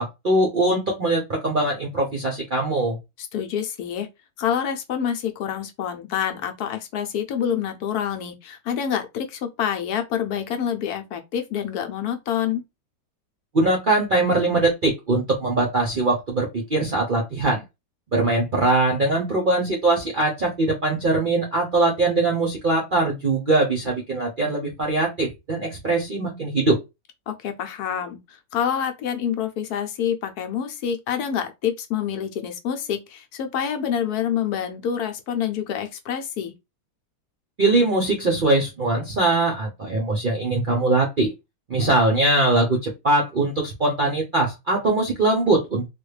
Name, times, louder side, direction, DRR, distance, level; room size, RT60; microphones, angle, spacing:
voice 1, 0.0-3.0 13.5-17.6 18.1-26.8 37.6-41.3 41.7-45.9, right 2 dB, 55° right, 0.5 m, -21 dB
voice 2, 3.2-4.1 4.4-12.6 27.3-36.5, left 8 dB, 70° left, 1.1 m, -27 dB
3.4 x 2.3 x 3.2 m
omnidirectional pair, 1.8 m